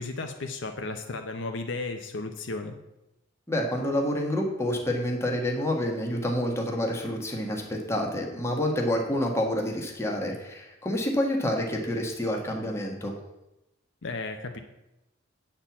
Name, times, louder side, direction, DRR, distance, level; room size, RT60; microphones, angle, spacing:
voice 1, 0.0-2.7 14.0-14.6, left 3 dB, 65° left, 5 dB, 0.7 m, -34 dB
voice 2, 3.5-13.1, left 1 dB, 15° left, 0 dB, 1.4 m, -28 dB
8.6 x 4.4 x 7.1 m, 0.93 s
head